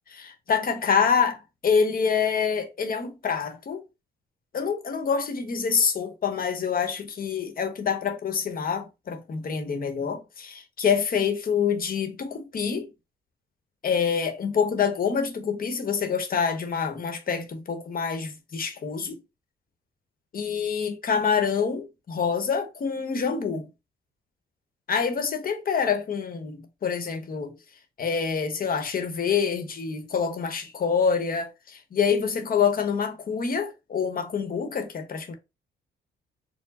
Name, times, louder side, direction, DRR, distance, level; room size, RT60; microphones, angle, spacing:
voice 1, 0.1-1.4 1.6-3.8 4.5-12.9 13.8-19.2 20.3-23.7 24.9-27.5 28.0-35.3, left 6 dB, 45° left, 1.1 m, -26 dB
4.5 x 2.2 x 4.1 m
cardioid pair, 90°, 20 cm